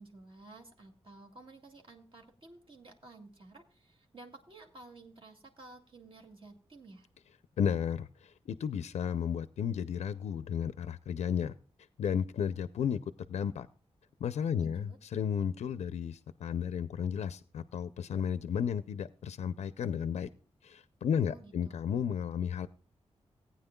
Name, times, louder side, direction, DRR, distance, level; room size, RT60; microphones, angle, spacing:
voice 1, 0.0-7.1 14.6-15.0 21.2-21.7, right 2 dB, 50° right, 2 dB, 2.3 m, -53 dB
voice 2, 7.6-11.6 12.0-13.0 13.3-13.7 14.2-20.3 20.6-22.7, left 8 dB, 85° left, 13 dB, 0.5 m, -33 dB
18.5 x 9.5 x 2.2 m, 0.39 s
wide cardioid pair, 115°, 11 cm